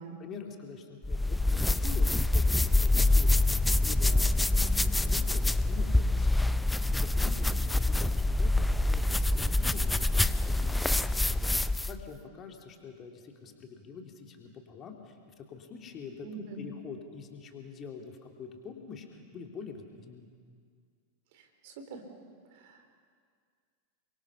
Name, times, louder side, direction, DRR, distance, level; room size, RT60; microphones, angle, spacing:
voice 1, 0.2-16.3 16.6-20.3, left 5 dB, 30° left, 2 dB, 3.0 m, -46 dB
sound 1, 1.0-12.0, left 2 dB, 5° left, 0.6 m, -26 dB
voice 2, 16.2-16.6 21.3-22.0 22.6-23.0, right 3 dB, 50° right, 5 dB, 3.7 m, -44 dB
29.5 x 24.0 x 5.7 m, 2.1 s
figure-of-eight pair, 90°, 0 cm